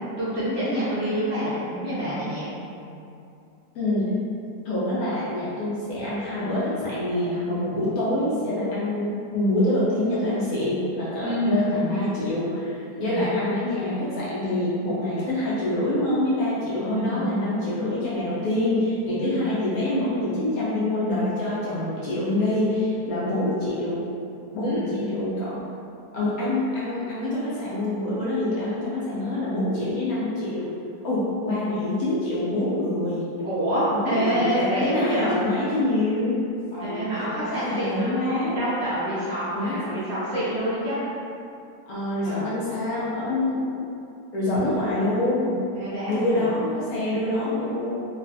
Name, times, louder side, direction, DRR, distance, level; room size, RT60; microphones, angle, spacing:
voice 1, 0.2-2.5 11.2-11.8 13.0-13.2 16.9-17.2 19.2-19.5 24.6-24.9 33.4-35.3 36.8-41.0 42.2-42.5 45.7-46.5, equal, 55° right, -11 dB, 0.7 m, -27 dB
voice 2, 3.7-4.0 4.6-24.0 24.5-25.6 26.1-30.7 31.0-33.2 33.9-36.4 36.7-38.6 39.5-40.0 41.9-43.7 44.3-45.5 46.1-48.0, left 1 dB, 65° left, -9 dB, 1.0 m, -26 dB
3.2 x 2.3 x 2.5 m, 2.6 s
omnidirectional pair, 1.9 m